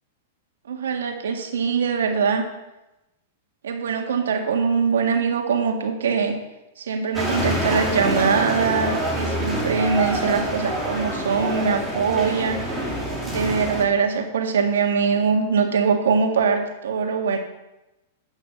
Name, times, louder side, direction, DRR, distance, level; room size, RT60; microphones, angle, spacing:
voice 1, 0.7-2.4 3.6-6.4 6.8-12.6 13.3-17.4, right 5 dB, 85° right, 4 dB, 1.7 m, -22 dB
sound 1, 7.1-13.8, right 1 dB, ahead, 2.6 m, -26 dB
9.1 x 6.2 x 6.9 m, 0.98 s
hypercardioid pair, 140°, 0 cm